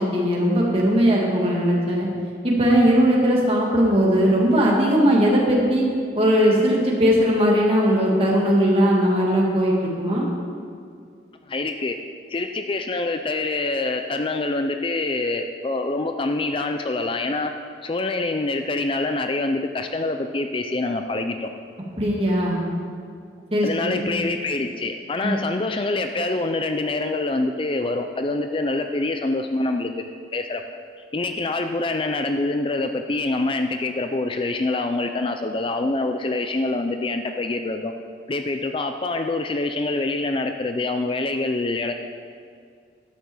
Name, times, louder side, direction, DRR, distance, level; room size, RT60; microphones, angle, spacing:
voice 1, 0.0-2.1 2.4-5.9 6.2-10.3 22.0-22.6 23.5-24.2 25.2-25.3, equal, 35° right, -3 dB, 2.1 m, -19 dB
voice 2, 11.4-12.0 12.3-17.5 17.8-21.5 23.6-30.6 31.1-37.9 38.3-41.9, left 2 dB, 30° left, 6 dB, 0.4 m, -25 dB
11.5 x 6.1 x 7.1 m, 2.2 s
head